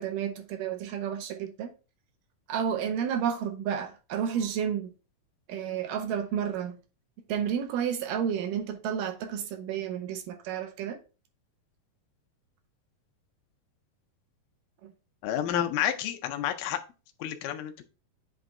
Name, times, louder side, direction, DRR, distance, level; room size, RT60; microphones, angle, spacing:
voice 1, 0.0-1.7 2.5-4.9 5.5-6.8 7.3-11.0 14.8-14.9, right 8 dB, 75° right, 2.3 m, -31 dB
voice 2, 15.2-16.8 17.2-17.8, left 11 dB, 80° left, 2.1 m, -30 dB
8.0 x 3.3 x 3.6 m
omnidirectional pair, 4.0 m